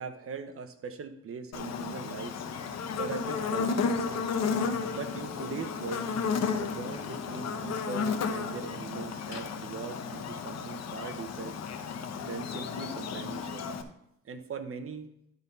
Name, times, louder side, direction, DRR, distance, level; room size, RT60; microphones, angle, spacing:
voice 1, 0.0-2.3 3.0-4.3 4.9-6.1 6.5-11.6 12.2-13.6 14.2-15.1, right 5 dB, 45° right, 8 dB, 1.1 m, -40 dB
Buzz, 1.5-13.8, left 5 dB, 60° left, 1.0 m, -33 dB
11.5 x 4.1 x 5.6 m, 0.78 s
cardioid pair, 90°, 30 cm